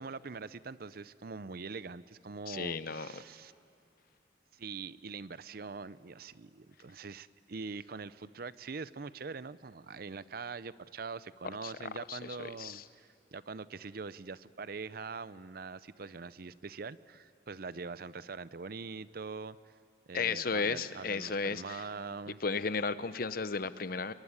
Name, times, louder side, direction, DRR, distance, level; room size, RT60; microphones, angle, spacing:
voice 1, 0.0-3.5 4.5-19.6 20.1-22.4, right 4 dB, 55° right, 16 dB, 0.6 m, -43 dB
voice 2, 2.5-3.2 11.6-11.7 12.1-12.8 20.1-21.8 22.4-24.1, left 4 dB, 55° left, 14 dB, 0.8 m, -34 dB
27.5 x 22.0 x 9.7 m, 2.6 s
head